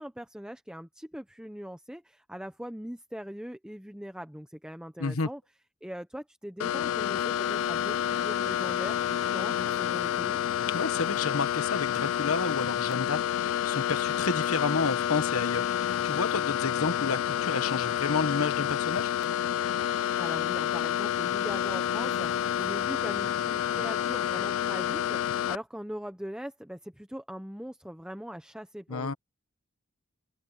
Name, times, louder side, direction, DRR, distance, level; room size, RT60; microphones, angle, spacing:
voice 1, 0.0-5.4 5.8-10.4 20.2-29.1, equal, 5° right, 1.1 m, -41 dB
sound 1, 6.6-25.6, left 10 dB, 65° left, 0.3 m, -29 dB
voice 2, 10.7-19.1 28.9-29.1, left 4 dB, 85° left, 1.2 m, -31 dB
head